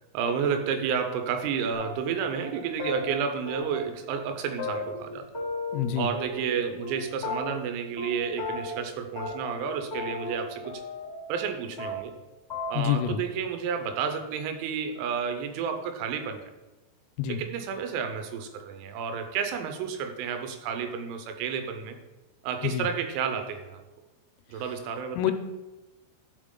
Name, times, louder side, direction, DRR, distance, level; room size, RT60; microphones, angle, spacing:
voice 1, 0.1-5.3 6.0-10.8 11.3-12.2 12.7-16.5 17.3-22.0 22.4-23.8 24.5-25.3, right 6 dB, 90° right, 6 dB, 3.6 m, -31 dB
sound 1, 1.7-2.1 2.4-2.5 2.8-3.0 3.5-4.0 4.2-4.3 4.6-5.8 6.1-6.9 7.2-7.7 8.0-8.1 8.4-8.8 9.1-9.6 9.9-11.5 11.8-12.2 12.5-12.7, left 3 dB, 10° left, 1.0 m, -35 dB
voice 2, 5.7-6.1 12.7-13.2 17.2-17.4 22.6-22.9 25.2-25.3, left 10 dB, 85° left, 8 dB, 3.1 m, -26 dB
11.5 x 5.6 x 3.8 m, 1.1 s
omnidirectional pair, 6.0 m